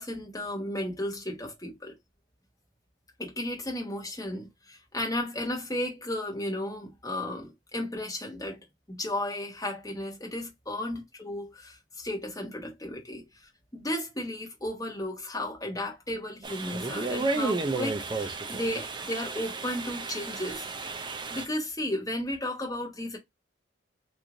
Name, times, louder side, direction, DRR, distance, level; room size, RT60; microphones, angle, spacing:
voice 1, 0.0-2.0 3.2-8.6 8.9-20.7 21.3-23.2, left 1 dB, 20° left, 1.1 m, -34 dB
sound 1, 16.4-21.5, right 3 dB, 25° right, 0.4 m, -32 dB
3.0 x 2.6 x 3.7 m
head